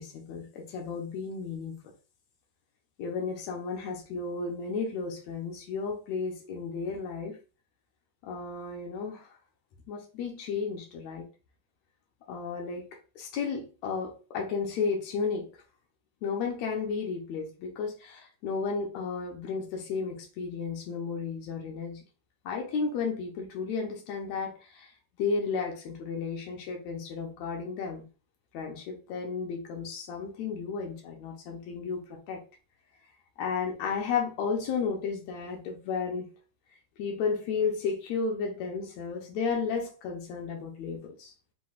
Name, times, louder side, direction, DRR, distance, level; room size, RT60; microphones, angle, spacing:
voice 1, 0.0-1.7 3.0-7.4 8.2-9.3 9.9-11.3 12.3-12.9 13.1-15.5 16.2-22.0 22.4-24.9 25.2-28.1 28.5-32.4 33.4-36.3 37.0-41.3, left 5 dB, 70° left, 1.7 m, -33 dB
5.9 x 3.1 x 2.4 m
omnidirectional pair, 4.2 m